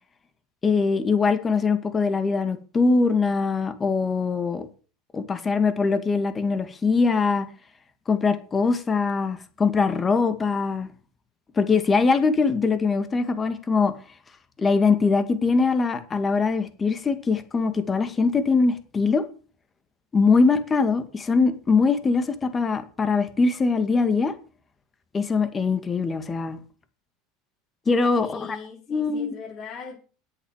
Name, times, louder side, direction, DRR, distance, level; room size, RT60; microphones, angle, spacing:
voice 1, 0.6-4.7 5.1-7.5 8.1-10.9 11.6-13.9 14.6-19.2 20.1-24.3 25.1-26.6 27.9-28.6 28.9-29.4, left 4 dB, 20° left, 2.1 m, -22 dB
voice 2, 28.2-30.0, left 5 dB, 45° left, 4.4 m, -39 dB
10.5 x 8.2 x 7.4 m
supercardioid pair, 110°, 0 cm